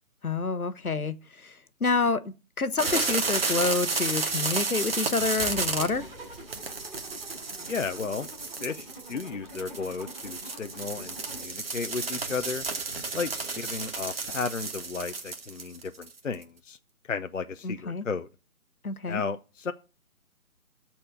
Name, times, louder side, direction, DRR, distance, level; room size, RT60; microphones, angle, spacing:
voice 1, 0.2-1.5 1.8-2.2 2.6-6.0 17.6-18.1 18.8-19.2, left 4 dB, 80° left, 1.1 m, -28 dB
sound 1, 2.8-16.4, right 4 dB, 40° right, 1.4 m, -32 dB
sound 2, 5.4-7.8, left 3 dB, 5° left, 3.6 m, -47 dB
Zipper (clothing), 5.5-11.5, right 1 dB, 10° right, 5.0 m, -46 dB
voice 2, 7.7-8.3 8.6-12.6 13.1-16.8 17.1-18.3 19.1-19.7, left 5 dB, 60° left, 0.7 m, -34 dB
13.0 x 4.4 x 6.5 m
figure-of-eight pair, 150°, 43 cm